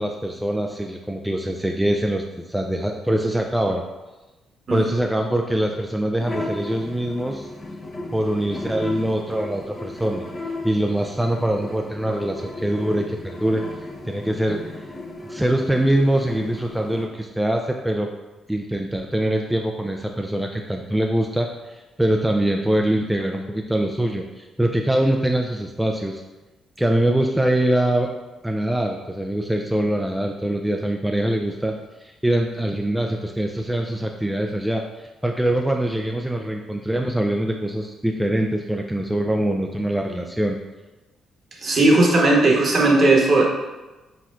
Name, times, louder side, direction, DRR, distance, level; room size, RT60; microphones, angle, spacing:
voice 1, 0.0-3.8 4.7-7.5 8.1-10.3 10.6-14.6 15.3-18.1 18.5-26.2 26.8-28.1 28.4-31.7 32.0-40.6, right 1 dB, 5° right, 2 dB, 0.3 m, -23 dB
sound 1, 6.2-17.1, left 2 dB, 30° left, 0.6 m, -35 dB
voice 2, 41.6-43.4, right 2 dB, 50° right, -1 dB, 1.0 m, -16 dB
4.2 x 4.2 x 2.4 m, 1.1 s
cardioid pair, 90°, 0 cm